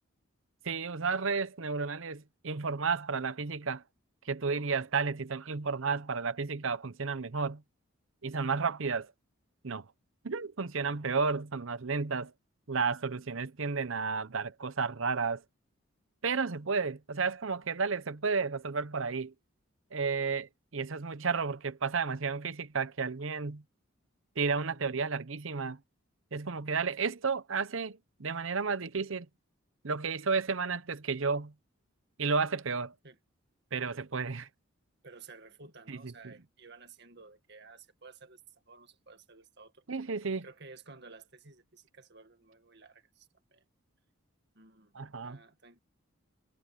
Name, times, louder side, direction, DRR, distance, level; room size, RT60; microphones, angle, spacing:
voice 1, 0.6-3.8 4.2-7.6 8.2-9.1 9.6-9.9 10.2-12.3 12.7-15.4 16.2-19.3 19.9-23.6 24.4-25.8 26.3-29.3 29.8-31.5 32.2-32.9 33.7-34.5 35.9-36.3 39.9-40.4 44.9-45.4, right 5 dB, 70° right, 0.9 m, -32 dB
voice 2, 35.0-38.4 38.7-39.8 40.4-43.6 44.5-45.8, right 4 dB, 50° right, 2.0 m, -54 dB
head